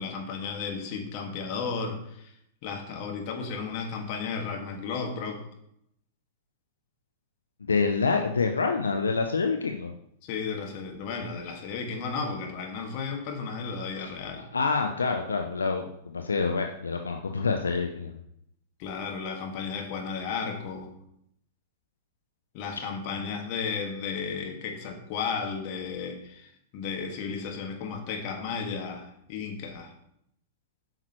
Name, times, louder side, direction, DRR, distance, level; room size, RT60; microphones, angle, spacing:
voice 1, 0.0-2.3 2.6-5.4 10.2-14.4 18.8-20.9 22.5-29.9, left 5 dB, 50° left, 2 dB, 1.7 m, -34 dB
voice 2, 7.6-9.9 14.5-18.2, left 4 dB, 85° left, 4 dB, 0.5 m, -27 dB
8.9 x 5.8 x 3.0 m, 0.74 s
figure-of-eight pair, 100°, 0 cm